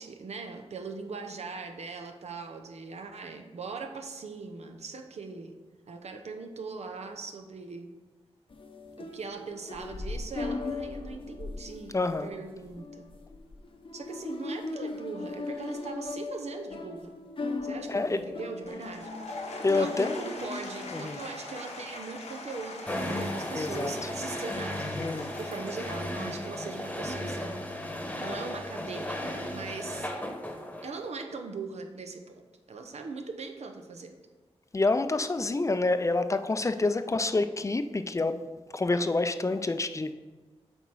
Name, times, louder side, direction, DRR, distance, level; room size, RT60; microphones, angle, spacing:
voice 1, 0.0-5.6 5.9-7.9 9.0-13.1 13.9-17.1 17.6-19.1 19.7-27.6 28.2-30.1 30.8-34.1 36.8-36.9, right 4 dB, 75° right, 5 dB, 0.8 m, -40 dB
sound 1, 8.5-21.0, left 3 dB, 50° left, 0.8 m, -38 dB
voice 2, 11.9-12.3 17.9-18.2 19.6-20.2 20.9-21.2 23.5-23.9 25.0-25.3 34.7-38.4 38.7-40.1, left 3 dB, 25° left, 10 dB, 0.5 m, -27 dB
Applause / Crowd, 18.6-26.8, left 2 dB, 85° left, 1.2 m, -43 dB
sound 2, 22.9-31.1, left 1 dB, 10° left, 1.1 m, -35 dB
7.9 x 4.4 x 4.7 m, 1.3 s
cardioid pair, 60°, 11 cm